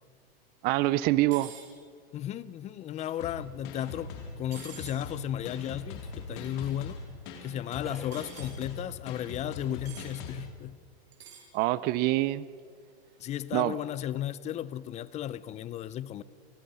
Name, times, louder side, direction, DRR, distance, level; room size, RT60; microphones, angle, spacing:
voice 1, 0.6-1.5 11.5-12.5 13.5-13.8, right 18 dB, 30° right, 0.5 m, -25 dB
sound 1, 1.3-1.7 4.5-5.0 8.1-8.6 9.9-10.1 11.1-11.5, right 7 dB, 85° right, 6.2 m, -47 dB
voice 2, 2.1-4.1 4.4-7.0 7.4-10.8 13.2-16.2, left 11 dB, 20° left, 0.6 m, -35 dB
sound 2, 3.0-8.3, equal, ahead, 6.6 m, -55 dB
sound 3, 3.2-10.4, left 4 dB, 50° left, 4.1 m, -41 dB
30.0 x 20.0 x 5.6 m
hypercardioid pair, 130°, 31 cm